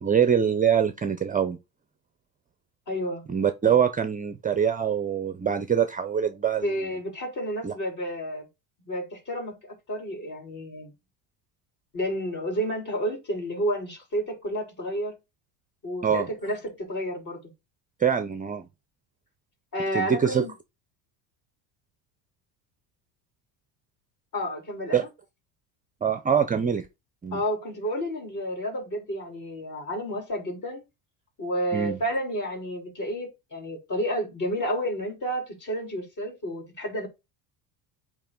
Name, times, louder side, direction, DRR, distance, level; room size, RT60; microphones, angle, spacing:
voice 1, 0.0-1.6 3.3-6.7 7.6-7.7 16.0-16.3 18.0-18.7 19.9-20.5 24.9-25.0 26.0-26.9 27.2-27.4 31.7-32.0, right 7 dB, 20° right, 0.6 m, -24 dB
voice 2, 2.9-3.2 6.6-8.5 8.9-10.9 11.9-15.2 15.8-17.4 19.7-20.5 24.3-25.1 27.3-30.8 31.4-37.1, equal, 40° left, 3.9 m, -31 dB
8.4 x 3.0 x 3.8 m
supercardioid pair, 100°, 46 cm